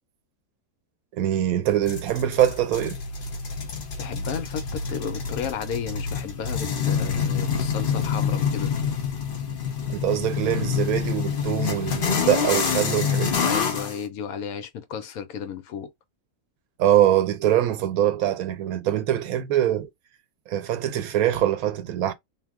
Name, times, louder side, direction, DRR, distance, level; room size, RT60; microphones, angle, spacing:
voice 1, 1.1-3.0 9.9-13.5 16.8-19.9 20.5-22.1, right 12 dB, 75° right, 1.1 m, -23 dB
sound 1, 1.9-14.0, left 6 dB, 50° left, 0.6 m, -27 dB
voice 2, 4.0-8.7 13.4-15.9, left 7 dB, 75° left, 1.1 m, -33 dB
2.8 x 2.0 x 3.4 m
omnidirectional pair, 1.5 m